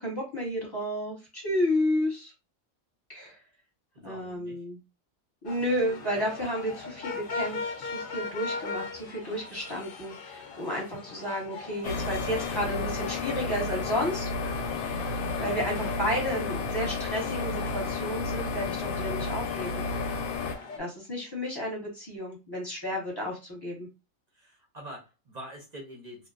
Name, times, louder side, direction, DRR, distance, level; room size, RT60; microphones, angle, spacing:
voice 1, 0.0-2.3 3.1-3.4 4.0-4.8 5.4-14.3 14.8-15.1 15.4-19.8 20.8-23.9, equal, 20° left, 1.0 m, -32 dB
voice 2, 3.9-4.6 24.3-26.3, right 1 dB, 40° right, 0.6 m, -45 dB
sound 1, 5.5-20.8, left 4 dB, 55° left, 0.6 m, -40 dB
sound 2, 11.8-20.5, left 4 dB, 90° left, 1.0 m, -32 dB
2.7 x 2.1 x 2.4 m
omnidirectional pair, 1.4 m